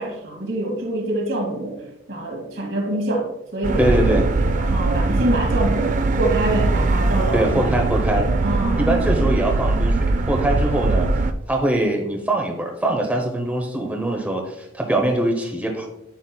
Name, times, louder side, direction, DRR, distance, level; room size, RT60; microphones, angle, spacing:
voice 1, 0.0-1.8 2.1-7.7 8.2-9.3, right 1 dB, 65° right, 0 dB, 1.9 m, -26 dB
sound 1, 3.6-11.3, right 2 dB, 40° right, 0.4 m, -21 dB
voice 2, 3.8-4.2 7.3-8.3 8.8-11.1 11.5-15.9, right 1 dB, 10° right, 1 dB, 0.7 m, -22 dB
9.2 x 6.1 x 2.2 m, 0.87 s
head